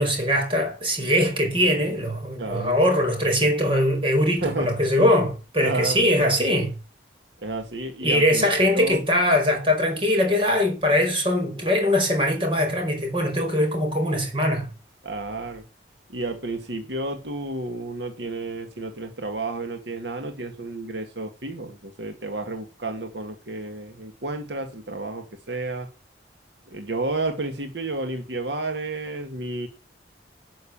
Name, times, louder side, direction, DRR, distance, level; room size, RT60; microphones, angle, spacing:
voice 1, 0.0-6.7 8.0-14.7, left 1 dB, 30° right, 5.1 m, -22 dB
voice 2, 2.4-2.8 4.4-5.1 5.6-6.3 7.4-8.5 8.7-9.0 15.0-15.6 16.1-25.9 26.7-29.7, right 2 dB, 75° right, 1.9 m, -31 dB
12.5 x 6.6 x 8.7 m
head